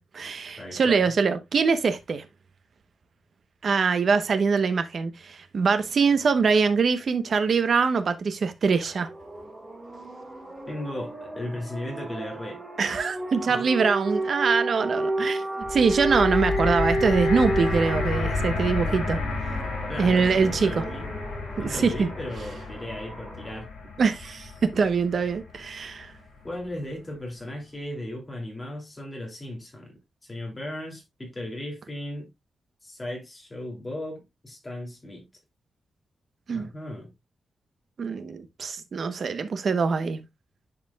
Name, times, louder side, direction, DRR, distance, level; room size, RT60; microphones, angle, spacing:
voice 1, 0.0-2.2 3.6-9.1 12.8-15.4 15.7-19.2 20.0-20.8 21.6-22.1 24.0-26.1 36.5-36.7 38.0-40.2, right 5 dB, 50° right, 0.9 m, -23 dB
voice 2, 0.6-1.1 10.7-12.6 13.4-13.6 19.9-21.1 21.5-23.7 26.4-32.3 32.8-35.2 36.5-37.1, left 1 dB, 20° left, 2.7 m, -36 dB
sound 1, 8.9-23.6, right 1 dB, 15° right, 1.8 m, -32 dB
sound 2, 15.6-25.8 26.6-26.7, left 4 dB, 75° left, 2.5 m, -32 dB
10.5 x 4.9 x 2.3 m
wide cardioid pair, 155°, 0 cm